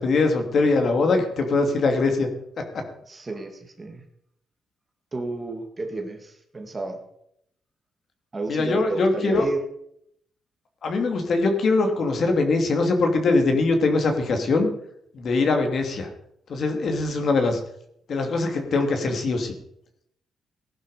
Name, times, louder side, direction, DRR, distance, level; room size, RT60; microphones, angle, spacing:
voice 1, 0.0-2.3 2.6-2.8 8.5-9.5 10.8-14.7 15.1-16.1 16.5-17.6 18.1-19.5, left 3 dB, 40° left, 5 dB, 2.7 m, -22 dB
voice 2, 3.1-4.0 5.1-7.0 8.3-9.6, right 3 dB, 20° right, 4 dB, 1.9 m, -32 dB
19.0 x 11.0 x 5.0 m, 0.74 s
cardioid pair, 175°, 0 cm